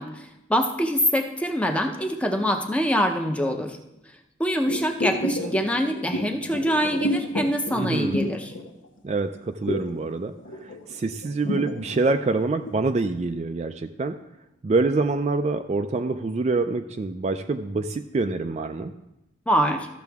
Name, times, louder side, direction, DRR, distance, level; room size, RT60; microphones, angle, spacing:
voice 1, 0.0-3.8 4.4-8.5 19.5-19.9, equal, 5° left, 5 dB, 0.6 m, -24 dB
sound 1, 4.6-9.1 9.3-12.9 13.2-13.3, left 1 dB, 85° left, 0.9 m, -30 dB
voice 2, 7.8-8.3 9.0-10.4 10.6-14.2 14.6-18.9, right 3 dB, 35° right, 7 dB, 0.3 m, -26 dB
13.5 x 6.7 x 3.5 m, 0.91 s
head